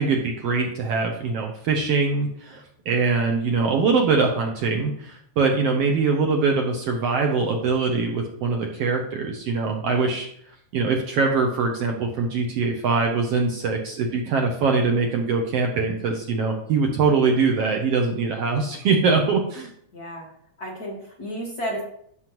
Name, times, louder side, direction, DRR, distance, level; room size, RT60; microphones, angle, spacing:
voice 1, 0.0-10.3 10.7-19.7, right 4 dB, 65° right, 2 dB, 1.6 m, -23 dB
voice 2, 19.9-20.3 20.6-21.8, equal, 40° left, -3 dB, 1.6 m, -32 dB
13.0 x 6.3 x 3.0 m, 0.68 s
omnidirectional pair, 3.4 m